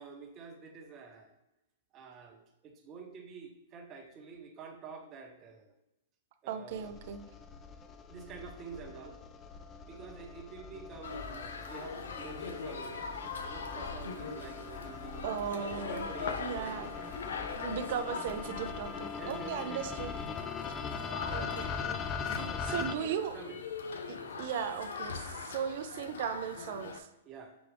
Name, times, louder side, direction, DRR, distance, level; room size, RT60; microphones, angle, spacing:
voice 1, 0.0-1.4 1.9-5.7 6.4-6.9 8.1-9.2 9.9-13.0 13.4-17.1 19.2-20.0 21.0-21.8 22.3-23.6 24.1-24.5 27.3-27.6, right 5 dB, 30° right, 3 dB, 0.8 m, -48 dB
voice 2, 6.5-7.3 15.2-16.1 16.4-16.9 17.5-20.1 21.3-21.6 22.7-23.3 24.1-27.1, right 8 dB, 55° right, 9 dB, 0.4 m, -37 dB
sound 1, 6.7-22.9, left 6 dB, 20° left, 0.3 m, -41 dB
sound 2, 11.0-27.0, left 5 dB, 80° left, 0.5 m, -42 dB
6.0 x 2.3 x 3.3 m, 0.90 s
hypercardioid pair, 130°, 0 cm